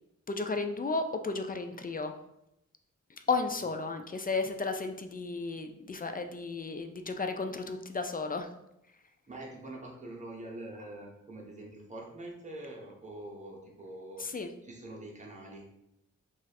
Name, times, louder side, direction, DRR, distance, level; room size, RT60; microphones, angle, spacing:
voice 1, 0.3-2.1 3.3-8.5 14.2-14.5, left 3 dB, 30° left, 7 dB, 0.4 m, -33 dB
voice 2, 9.3-15.7, right 1 dB, 25° right, -1 dB, 1.0 m, -45 dB
3.0 x 2.5 x 4.1 m, 0.83 s
cardioid pair, 70°, 30 cm